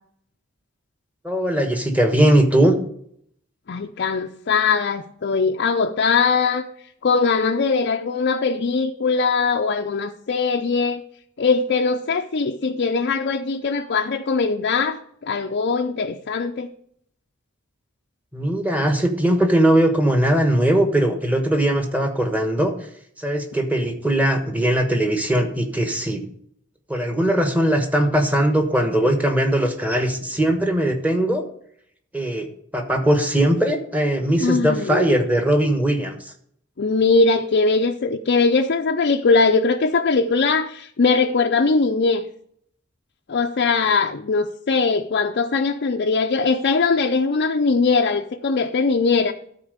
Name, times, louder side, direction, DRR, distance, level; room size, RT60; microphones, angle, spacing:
voice 1, 1.2-2.7 18.3-22.7 23.2-26.2 26.9-31.4 32.1-32.5 32.7-36.1, right 1 dB, 5° right, 1.3 m, -20 dB
voice 2, 3.7-6.7 7.0-11.0 11.4-16.7 34.4-35.2 36.8-42.3 43.3-49.3, left 4 dB, 50° left, 0.5 m, -21 dB
13.0 x 4.4 x 6.6 m
head